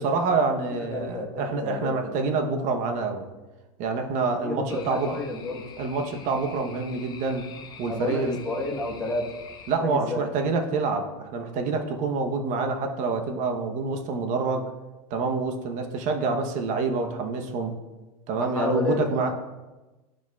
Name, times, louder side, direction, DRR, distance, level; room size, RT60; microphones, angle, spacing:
voice 1, 0.0-3.3 3.8-5.2 5.8-7.5 7.8-8.4 9.7-14.6 15.1-17.7 18.3-19.3, right 4 dB, 45° right, 5 dB, 0.8 m, -27 dB
voice 2, 0.7-2.2 4.4-5.7 7.9-9.3 9.8-10.2 18.4-19.3, left 2 dB, 5° left, -2 dB, 1.1 m, -31 dB
sound 1, 4.7-9.8, left 6 dB, 20° left, 0.5 m, -46 dB
11.5 x 5.0 x 2.3 m, 1.1 s
supercardioid pair, 135°, 19 cm